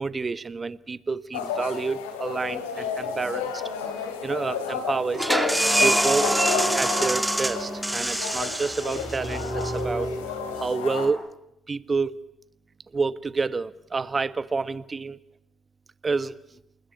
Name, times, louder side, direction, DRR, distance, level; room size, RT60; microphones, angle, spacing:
voice 1, 0.0-3.6 4.2-5.3 5.8-6.3 6.7-10.2 10.6-11.2 11.7-12.1 12.9-15.2 16.0-16.3, right 4 dB, 35° right, 16 dB, 1.3 m, -28 dB
sound 1, 1.3-11.1, left 6 dB, 85° left, 3.0 m, -32 dB
sound 2, 5.1-10.6, right 1 dB, 10° right, 2.8 m, -25 dB
28.5 x 21.0 x 9.6 m, 0.86 s
hypercardioid pair, 50°, 0 cm